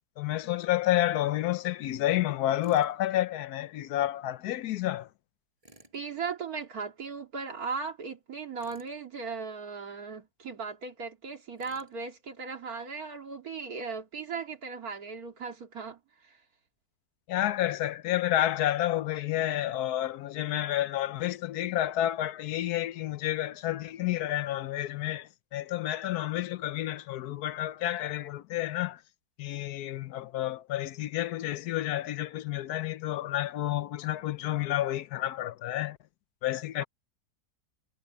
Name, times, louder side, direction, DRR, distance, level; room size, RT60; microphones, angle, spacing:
voice 1, 0.2-5.1 17.3-29.0 29.4-36.0 36.4-36.8, left 13 dB, 80° left, 1.2 m, -30 dB
Tools, 2.6-2.9 5.6-6.0 8.6-9.0 11.6-12.0, right 1 dB, 20° right, 7.1 m, -56 dB
voice 2, 5.9-16.4 36.8-36.9, right 5 dB, 65° right, 2.6 m, -37 dB
omnidirectional pair, 1.7 m